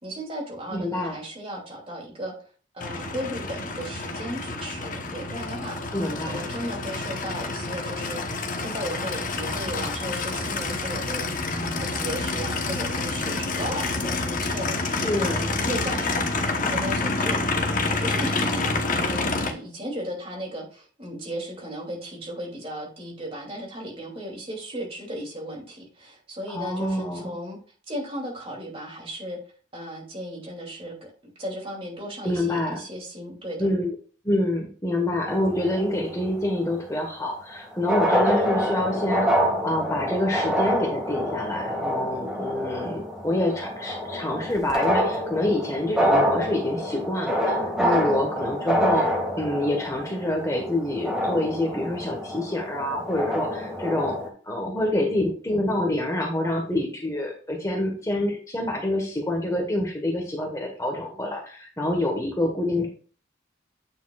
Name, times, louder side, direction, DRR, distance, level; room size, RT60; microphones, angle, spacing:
voice 1, 0.0-2.3 2.7-16.3 16.6-17.4 17.8-27.6 27.9-29.4 29.7-31.1 31.4-33.7 47.8-48.2, equal, 30° right, -1 dB, 2.6 m, -36 dB
voice 2, 0.7-1.2 5.9-6.5 14.9-15.5 26.5-27.3 32.2-32.8 33.6-33.9 34.2-54.2 54.4-62.9, left 1 dB, 15° left, 1 dB, 1.3 m, -27 dB
Aircraft, 2.8-19.5, left 3 dB, 45° left, 1.0 m, -28 dB
sound 1, 35.3-36.3 37.5-37.6 37.8-54.3, equal, 5° right, 1.9 m, -26 dB
8.7 x 6.9 x 2.4 m, 0.41 s
head